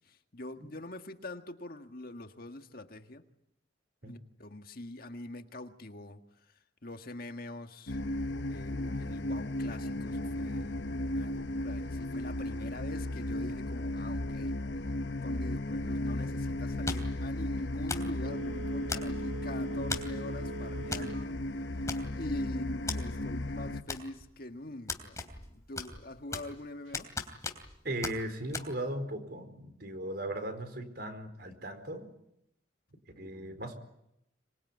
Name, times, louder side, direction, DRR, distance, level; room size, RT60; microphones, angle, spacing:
voice 1, 0.3-3.2 4.0-6.2 6.8-8.0 8.5-10.8 11.0-21.3 22.1-25.2 25.5-27.1, left 1 dB, 50° left, 1.8 m, -44 dB
sound 1, 7.9-23.8, left 1 dB, 65° left, 1.1 m, -35 dB
sound 2, 16.9-17.2 17.9-18.2 18.9-19.3 19.9-20.2 20.9-21.1 21.4-21.5 21.9-22.4 22.9-23.0 23.9-24.4 24.9-25.5 25.8-26.6 26.9-27.8 28.0-28.2 28.5-28.7, left 3 dB, 15° left, 3.0 m, -37 dB
Telephone, 18.2-21.3 21.7-21.8, right 4 dB, 85° right, 1.1 m, -43 dB
voice 2, 27.8-32.1 33.2-33.7, right 1 dB, 55° right, 4.5 m, -38 dB
26.5 x 21.5 x 9.6 m
head